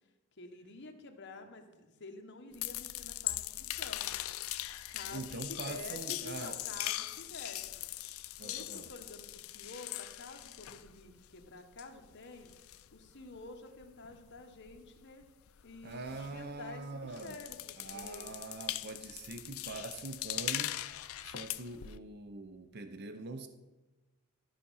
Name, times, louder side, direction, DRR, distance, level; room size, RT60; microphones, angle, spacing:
voice 1, 0.4-4.1 4.9-7.7 8.4-12.5 12.9-15.2 15.6-18.3, left 3 dB, 55° left, 4 dB, 1.1 m, -49 dB
sound 1, 2.5-11.4 11.7-16.8 17.1-22.0, left 15 dB, 70° left, 0.4 m, -41 dB
voice 2, 5.1-6.6 8.4-8.9 15.8-17.4 17.8-20.8 21.2-23.5, right 3 dB, 50° right, 9 dB, 0.5 m, -43 dB
12.5 x 5.1 x 5.5 m, 1.1 s
head